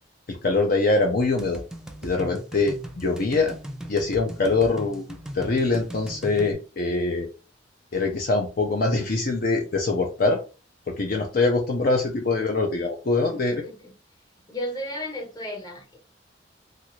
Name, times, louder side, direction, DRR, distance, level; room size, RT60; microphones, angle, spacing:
voice 1, 0.3-1.6 2.0-3.6 3.9-7.3 7.9-10.4 10.9-13.6, left 3 dB, 50° left, 0.5 m, -23 dB
sound 1, 1.4-6.5, right 1 dB, 5° right, 0.4 m, -39 dB
voice 2, 13.2-13.9 14.5-16.0, left 1 dB, 20° left, 0.9 m, -34 dB
3.2 x 2.5 x 3.0 m
head